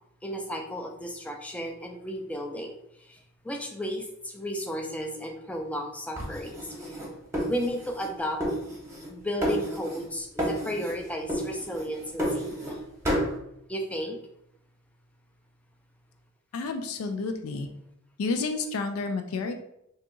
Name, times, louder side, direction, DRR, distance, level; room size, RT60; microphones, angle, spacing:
voice 1, 0.2-2.8 3.1-3.2 3.4-6.7 7.5-8.4 9.1-12.8 13.7-14.2, equal, 5° left, 2 dB, 0.4 m, -33 dB
sound 1, 6.2-8.1 8.4-9.1 9.4-10.1 10.4-11.0 11.3-12.8 13.0-13.3, equal, 15° right, 0.9 m, -31 dB
voice 2, 16.5-17.7 18.2-19.5, left 3 dB, 80° left, 6 dB, 0.3 m, -30 dB
2.7 x 2.3 x 3.7 m, 0.79 s
head